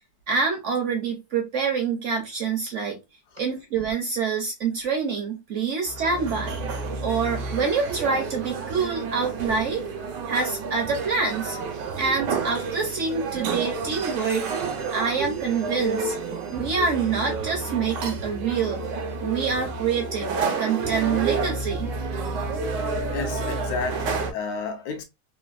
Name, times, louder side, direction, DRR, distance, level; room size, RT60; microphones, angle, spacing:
voice 1, 0.3-3.0 3.4-6.6 7.0-9.8 10.3-11.6 12.0-14.5 14.9-16.1 16.5-18.8 19.2-21.9, right 5 dB, 70° right, 0.7 m, -26 dB
sound 1, 5.8-24.3, right 4 dB, 85° right, 1.3 m, -30 dB
voice 2, 23.1-25.0, left 4 dB, 70° left, 1.0 m, -31 dB
3.3 x 2.2 x 2.3 m
omnidirectional pair, 1.8 m